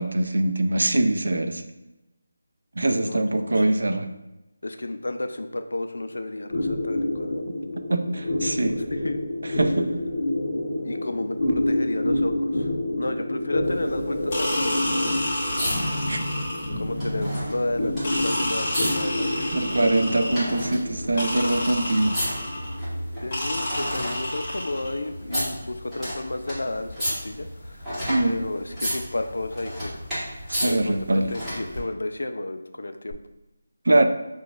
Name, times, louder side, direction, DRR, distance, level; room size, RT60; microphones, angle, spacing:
voice 1, 0.0-1.6 2.8-4.1 7.5-7.6 7.9-8.8 9.6-9.9 11.4-11.5 16.1-16.2 19.5-22.2 28.0-28.4 30.5-31.3 33.9-34.1, right 2 dB, 85° right, 7 dB, 0.4 m, -23 dB
voice 2, 4.6-7.4 7.7-8.1 8.5-8.7 9.0-9.2 9.5-9.6 10.8-12.7 13.0-15.2 16.8-19.6 23.2-27.8 28.2-29.9 30.6-30.9 31.3-33.2, left 2 dB, 90° left, 8 dB, 0.4 m, -32 dB
sound 1, 6.5-25.3, left 1 dB, 65° left, 0.9 m, -29 dB
sound 2, 13.6-31.8 33.1-33.2, equal, 5° right, 1.0 m, -34 dB
sound 3, 14.3-16.9 18.0-20.6 21.2-22.7 23.3-24.9, left 1 dB, 30° left, 1.1 m, -30 dB
6.0 x 2.2 x 2.4 m, 0.94 s
figure-of-eight pair, 175°, 0 cm